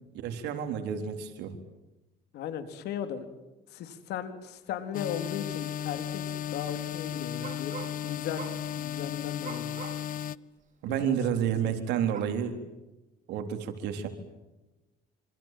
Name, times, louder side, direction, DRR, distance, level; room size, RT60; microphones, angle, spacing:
voice 1, 0.1-1.6 10.8-12.5 13.3-14.1, right 9 dB, 85° right, 6 dB, 3.9 m, -30 dB
voice 2, 2.3-3.3 3.7-7.7 8.0-8.5 8.8-9.7 10.9-11.8, left 9 dB, 75° left, 8 dB, 3.8 m, -37 dB
sound 1, 4.9-10.4, left 10 dB, 55° left, 0.9 m, -35 dB
sound 2, 5.4-5.5 5.8-6.2 7.4-8.0 8.3-8.7 9.4-10.1 10.6-10.7 12.1-12.2, right 7 dB, 50° right, 5.2 m, -43 dB
27.5 x 26.5 x 7.6 m, 1.0 s
cardioid pair, 110°, 17 cm